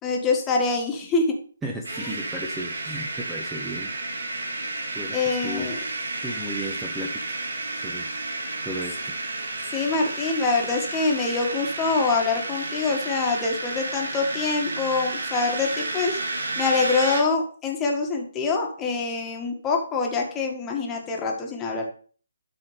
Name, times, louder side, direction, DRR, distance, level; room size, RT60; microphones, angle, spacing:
voice 1, 0.0-1.4 2.0-2.1 5.1-5.8 9.7-16.2 16.6-21.8, left 4 dB, 15° left, 1 dB, 1.6 m, -25 dB
voice 2, 1.6-3.9 4.9-5.7 6.2-7.4 7.7-8.1 8.6-9.0, right 1 dB, 10° right, 0 dB, 1.0 m, -34 dB
sound 1, 1.8-17.2, right 2 dB, 75° right, 2.2 m, -31 dB
11.5 x 4.2 x 3.3 m, 0.43 s
figure-of-eight pair, 145°, 0 cm